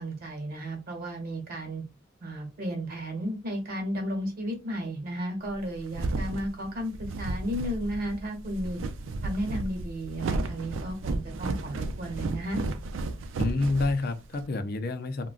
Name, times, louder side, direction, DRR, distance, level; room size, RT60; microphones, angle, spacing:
voice 1, 0.0-1.8 2.2-8.8 9.2-12.6, equal, 50° right, 1.2 m, -33 dB
sound 1, 5.5-14.4, right 2 dB, 80° right, 0.4 m, -33 dB
voice 2, 13.4-15.3, left 3 dB, 50° left, 0.4 m, -28 dB
3.6 x 2.2 x 2.3 m
head